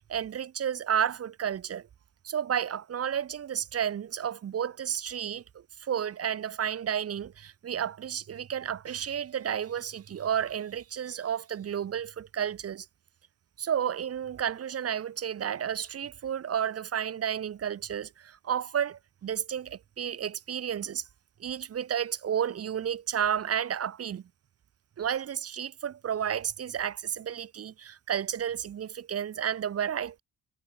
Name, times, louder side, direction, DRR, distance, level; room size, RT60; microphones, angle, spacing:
voice 1, 0.1-1.9 2.2-12.9 13.6-21.0 21.4-24.2 25.0-30.2, right 9 dB, 40° right, 0.7 m, -32 dB
cardioid pair, 90°, 36 cm